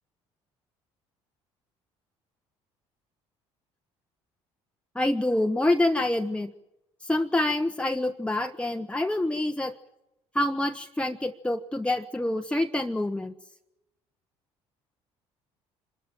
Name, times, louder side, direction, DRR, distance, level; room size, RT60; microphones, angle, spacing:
voice 1, 4.9-6.5 7.0-9.7 10.3-13.3, left 1 dB, 5° left, 5 dB, 1.0 m, -26 dB
25.5 x 13.5 x 8.9 m, 0.91 s
hypercardioid pair, 60°, 14 cm